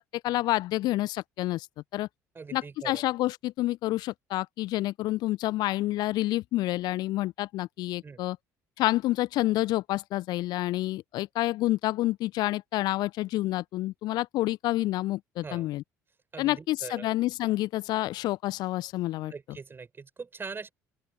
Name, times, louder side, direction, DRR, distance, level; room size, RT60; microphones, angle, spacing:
voice 1, 0.0-1.7 1.9-2.1 2.5-8.4 8.8-15.8 16.4-19.3, left 17 dB, 55° left, 1.0 m, -28 dB
voice 2, 2.3-3.0 8.0-8.2 15.4-15.7 16.3-17.1 19.1-20.7, right 4 dB, 25° right, 7.3 m, -42 dB
open air
figure-of-eight pair, 55°, 9 cm